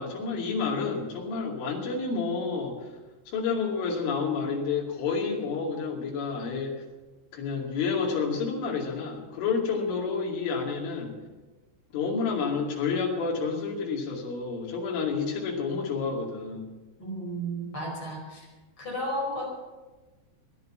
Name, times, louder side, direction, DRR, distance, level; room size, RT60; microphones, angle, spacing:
voice 1, 0.0-2.8 3.3-6.8 7.3-11.1 11.9-16.7, left 5 dB, 75° left, -1 dB, 4.9 m, -29 dB
voice 2, 17.0-18.5 18.8-19.6, right 1 dB, 25° left, -2 dB, 5.3 m, -33 dB
16.0 x 11.0 x 7.4 m, 1.2 s
omnidirectional pair, 5.6 m